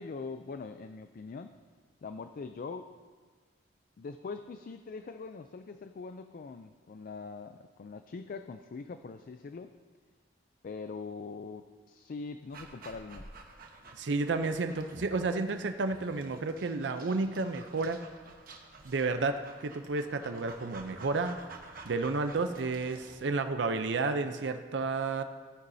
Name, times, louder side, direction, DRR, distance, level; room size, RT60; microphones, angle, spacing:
voice 1, 0.0-1.5 2.0-2.9 4.0-9.7 10.6-13.3, left 4 dB, 50° left, 9 dB, 0.4 m, -42 dB
Dog, 12.5-23.2, right 3 dB, 55° right, 1.1 m, -51 dB
voice 2, 13.9-18.0 18.8-21.4 21.8-25.2, right 3 dB, 75° right, 8 dB, 0.5 m, -31 dB
15.0 x 9.6 x 2.7 m, 1.5 s
head